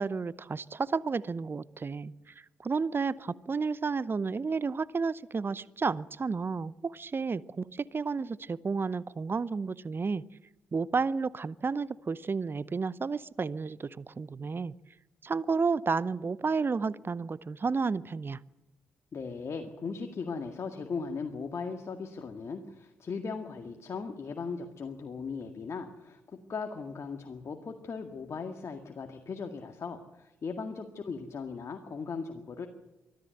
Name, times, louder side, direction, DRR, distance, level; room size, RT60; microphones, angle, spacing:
voice 1, 0.0-2.1 2.6-10.2 10.7-14.7 15.2-18.4, right 4 dB, 35° right, 20 dB, 0.7 m, -31 dB
voice 2, 19.1-26.2 26.5-32.7, left 5 dB, 50° left, 4 dB, 2.0 m, -38 dB
24.5 x 14.5 x 7.9 m, 1.1 s
hypercardioid pair, 40°, 6 cm